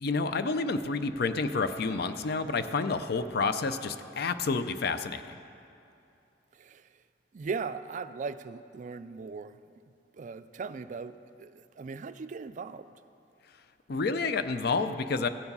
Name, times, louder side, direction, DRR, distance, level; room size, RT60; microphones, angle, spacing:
voice 1, 0.0-5.4 13.9-15.3, left 4 dB, 60° left, 0.5 m, -29 dB
voice 2, 6.5-7.0 7.3-9.6 10.1-12.9, right 5 dB, 45° right, 0.4 m, -39 dB
15.5 x 7.1 x 5.4 m
head